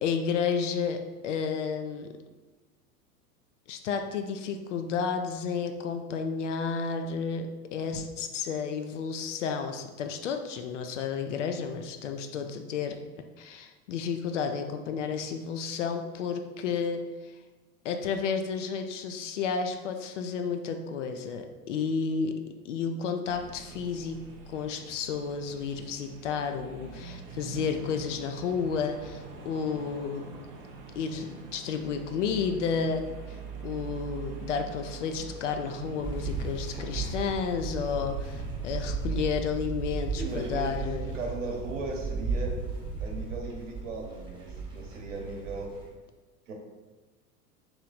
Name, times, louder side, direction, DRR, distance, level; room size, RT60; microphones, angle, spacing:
voice 1, 0.0-2.1 3.7-13.0 13.4-17.3 17.8-22.3 22.6-24.2 24.5-30.3 31.0-33.0 33.3-33.4 33.6-41.2, left 6 dB, 55° left, 6 dB, 0.5 m, -31 dB
sound 1, 23.2-38.9, right 4 dB, 25° right, 0.4 m, -44 dB
sound 2, 36.0-45.9, right 4 dB, 10° right, 0.8 m, -35 dB
voice 2, 40.2-40.8 41.1-42.5 43.0-45.7 46.5-46.6, right 3 dB, 55° right, 1 dB, 1.0 m, -37 dB
3.1 x 3.1 x 3.9 m, 1.2 s
figure-of-eight pair, 85°, 45 cm